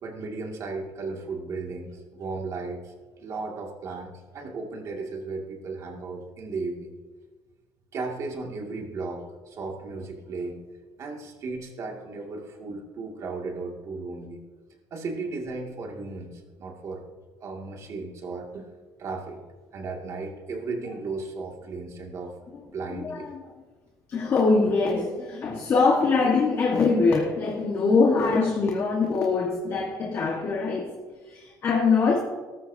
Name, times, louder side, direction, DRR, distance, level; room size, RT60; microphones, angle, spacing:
voice 1, 0.0-6.9 7.9-10.6 11.0-14.4 14.9-17.0 17.4-18.7 19.0-19.4 19.7-22.3 22.7-23.3 24.1-24.2 26.2-26.3, right 3 dB, 40° right, 1 dB, 2.3 m, -35 dB
voice 2, 23.0-23.4 24.1-30.9 31.3-32.2, left 4 dB, 35° left, 0 dB, 1.5 m, -23 dB
18.5 x 13.5 x 2.8 m, 1.3 s
cardioid pair, 175°, 8 cm